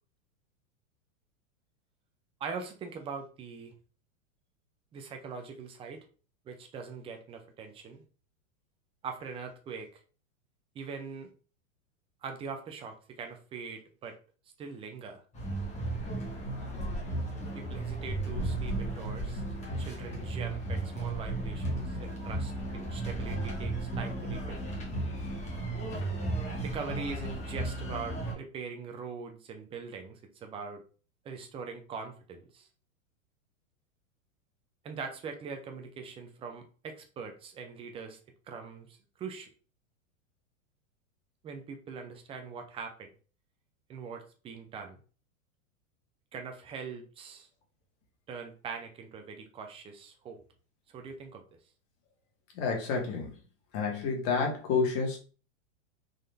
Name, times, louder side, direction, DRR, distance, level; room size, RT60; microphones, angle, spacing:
voice 1, 2.4-3.7 4.9-6.0 6.5-8.0 9.0-10.0 10.7-11.3 12.2-14.2 14.6-15.2 16.6-16.7 17.5-19.4 19.8-24.6 26.6-30.8 31.2-32.7 34.8-38.2 38.5-39.5 41.4-43.1 43.9-45.0 46.3-47.5 48.3-50.4 50.9-51.4, right 5 dB, 15° right, 5 dB, 0.4 m, -42 dB
sound 1, 15.3-28.3, right 2 dB, 15° left, 1.1 m, -34 dB
voice 2, 52.5-53.3 53.7-55.2, left 5 dB, 40° left, 2 dB, 1.4 m, -29 dB
3.9 x 2.5 x 3.2 m, 0.38 s
hypercardioid pair, 130°, 40 cm